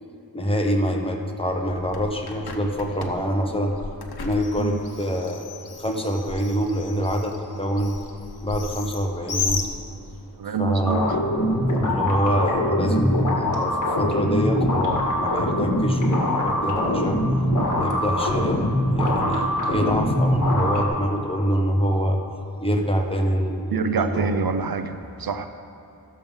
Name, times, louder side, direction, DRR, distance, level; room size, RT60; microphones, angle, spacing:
voice 1, 0.3-3.7 4.2-5.4 5.8-8.0 8.4-9.6 10.6-11.1 11.8-17.2 17.7-22.2 22.6-24.3, equal, 15° left, 1 dB, 1.1 m, -25 dB
Bird, 1.5-10.3, left 5 dB, 75° left, 1.0 m, -35 dB
voice 2, 10.4-11.1 23.7-24.9 25.2-25.5, right 5 dB, 65° right, 8 dB, 0.6 m, -25 dB
sound 1, 10.9-20.9, left 1 dB, 50° left, 1.8 m, -23 dB
12.5 x 7.3 x 5.5 m, 2.9 s
wide cardioid pair, 110°, 38 cm